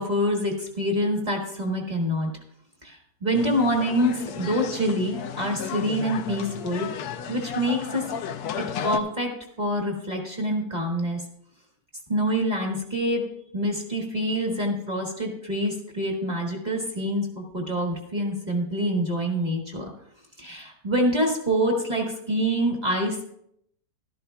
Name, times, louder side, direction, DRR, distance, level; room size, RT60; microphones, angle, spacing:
voice 1, 0.0-2.3 2.8-6.9 7.3-8.1 8.6-11.2 12.1-19.9 20.4-23.3, equal, 25° right, 1 dB, 1.7 m, -26 dB
sound 1, 3.3-9.0, left 8 dB, 70° left, 1.1 m, -33 dB
13.5 x 12.5 x 2.3 m, 0.72 s
omnidirectional pair, 1.8 m